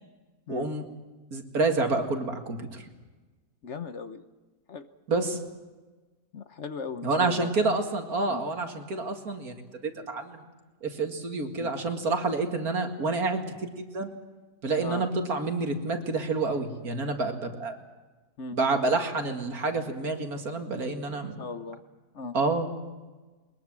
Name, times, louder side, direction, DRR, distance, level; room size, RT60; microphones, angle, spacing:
voice 1, 0.5-0.9 1.3-2.8 5.1-5.4 7.0-10.4 10.8-14.1 14.6-17.8 18.5-21.4 22.3-22.7, right 3 dB, 70° right, 5 dB, 2.6 m, -28 dB
voice 2, 3.6-4.2 4.7-4.9 6.3-7.5 8.3-8.4 11.6-11.7 14.8-15.0 18.4-18.6 21.2-21.8 22.1-22.4, left 4 dB, 55° left, 11 dB, 1.2 m, -38 dB
22.0 x 21.0 x 7.5 m, 1.2 s
omnidirectional pair, 1.6 m